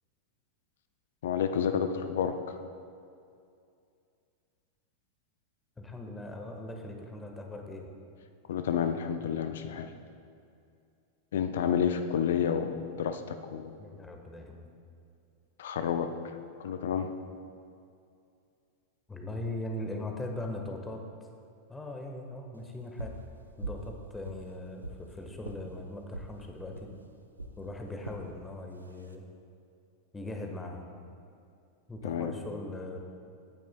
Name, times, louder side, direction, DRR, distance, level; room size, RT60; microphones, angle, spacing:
voice 1, 1.2-2.6 8.5-9.9 11.3-13.8 15.6-16.1 16.6-17.1 32.0-32.3, left 8 dB, 60° left, 9 dB, 0.6 m, -30 dB
voice 2, 5.8-7.9 13.8-14.7 19.1-21.3 21.7-23.2 23.6-26.9 27.6-29.3 30.1-30.9 31.9-33.0, left 1 dB, 10° left, 3 dB, 1.4 m, -40 dB
sound 1, 23.0-23.2 23.6-23.9 24.2-25.0 25.4-25.6 26.1-26.3 26.7-26.9 27.4-27.6 28.0-28.2 28.8-29.1, right 2 dB, 85° right, 0.7 m, -40 dB
20.0 x 9.2 x 2.3 m, 2.4 s
figure-of-eight pair, 90°, 0 cm